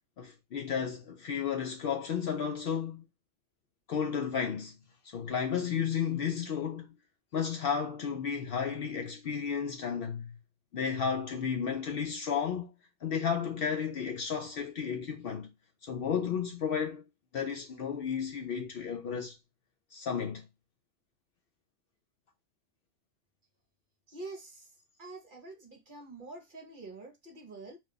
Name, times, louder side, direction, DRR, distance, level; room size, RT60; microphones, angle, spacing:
voice 1, 0.2-3.0 3.9-4.7 5.0-6.9 7.3-10.3 10.7-12.7 13.0-15.5 15.8-17.0 17.3-19.3 19.9-20.4, left 7 dB, 60° left, 0.6 m, -33 dB
voice 2, 24.1-24.7 25.0-27.8, right 2 dB, 50° right, 0.8 m, -46 dB
2.4 x 2.3 x 3.7 m
omnidirectional pair, 1.3 m